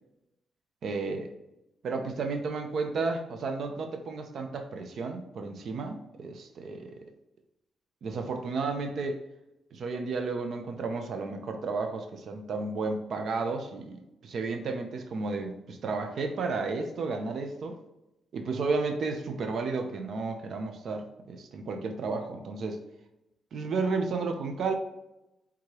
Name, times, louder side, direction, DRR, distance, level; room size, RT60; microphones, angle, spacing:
voice 1, 0.8-1.3 1.8-6.9 8.0-9.2 9.7-17.8 18.3-22.8 23.5-24.8, right 4 dB, 60° right, 5 dB, 0.6 m, -32 dB
4.8 x 3.6 x 2.9 m, 0.91 s
wide cardioid pair, 145°, 0 cm